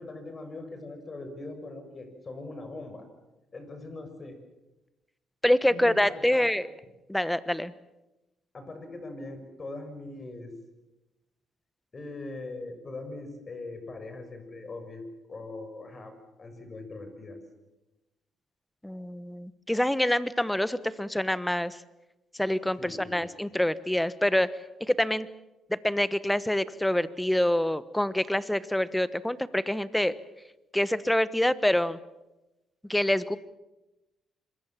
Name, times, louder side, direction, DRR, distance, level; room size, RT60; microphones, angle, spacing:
voice 1, 0.0-3.0 3.5-4.4 5.7-6.5 8.5-10.6 11.9-16.1 16.4-17.4 22.8-23.3, left 2 dB, 35° left, 7 dB, 6.7 m, -41 dB
voice 2, 5.4-6.7 7.1-7.7 18.8-21.8 22.3-24.5 24.8-25.3 25.7-30.1 30.7-32.0 32.9-33.4, left 1 dB, 5° left, 15 dB, 1.2 m, -26 dB
26.0 x 21.5 x 7.5 m, 0.99 s
cardioid pair, 90°, 0 cm